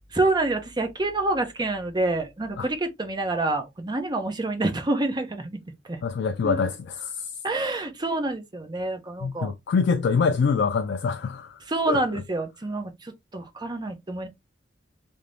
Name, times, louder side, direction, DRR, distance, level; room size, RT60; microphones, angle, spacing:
voice 1, 0.1-5.6 5.9-6.0 6.4-6.7 7.4-9.5 11.7-14.3, right 2 dB, 25° right, 0.7 m, -27 dB
voice 2, 6.0-7.3 9.2-11.6 11.9-12.0, left 5 dB, 65° left, 0.3 m, -25 dB
2.8 x 2.6 x 3.3 m
head